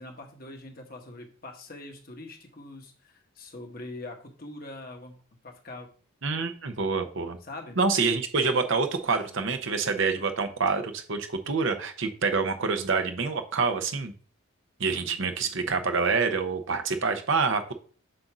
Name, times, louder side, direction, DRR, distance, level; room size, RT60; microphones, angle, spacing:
voice 1, 0.0-5.9 7.4-7.8 14.9-15.8, left 2 dB, 45° left, 3 dB, 1.2 m, -43 dB
voice 2, 6.2-7.4 7.8-14.1 14.8-17.7, right 4 dB, 60° right, 7 dB, 0.7 m, -27 dB
7.7 x 2.6 x 5.9 m, 0.43 s
head